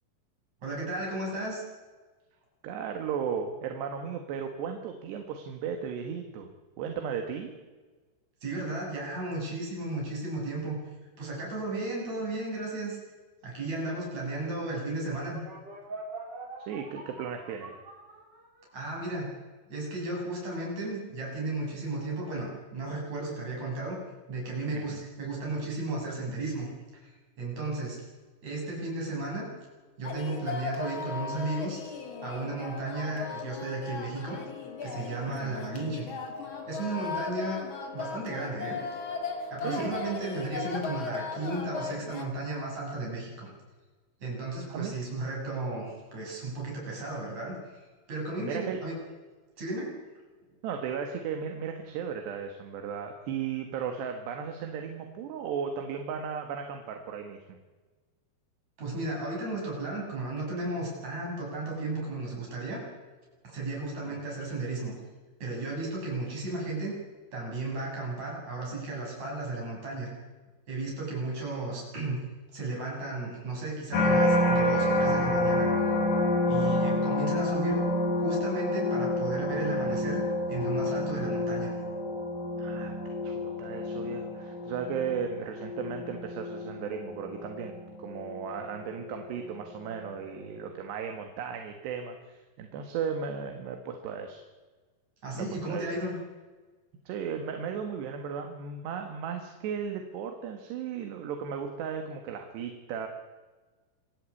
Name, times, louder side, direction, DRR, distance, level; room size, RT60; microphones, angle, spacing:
voice 1, 0.6-1.6 8.4-10.8 11.2-13.0 13.4-15.4 18.7-19.3 19.7-24.0 24.3-28.0 28.4-29.5 30.0-31.8 32.2-34.4 34.8-36.1 36.7-37.6 37.9-38.9 39.5-43.5 44.2-47.8 48.1-48.9 49.6-50.0 58.8-62.8 63.4-64.9 65.4-66.9 67.3-70.1 70.7-72.2 72.5-75.7 76.5-77.8 78.1-80.2 80.5-81.7 95.2-96.1, right 2 dB, 40° right, -2 dB, 9.0 m, -34 dB
voice 2, 2.6-6.5 6.8-7.5 16.6-17.7 24.7-25.1 35.3-35.6 39.6-40.0 44.7-44.9 48.4-48.8 50.6-57.6 64.0-64.2 82.6-94.4 95.4-95.9 97.1-103.1, right 7 dB, 75° right, 5 dB, 3.8 m, -36 dB
sound 1, 15.3-18.9, right 3 dB, 25° right, 4.6 m, -43 dB
sound 2, 30.0-42.2, left 5 dB, 35° left, 2.5 m, -37 dB
sound 3, 73.9-89.1 89.6-90.1, left 1 dB, 70° left, 5.5 m, -29 dB
27.0 x 16.0 x 8.5 m, 1.3 s
omnidirectional pair, 4.9 m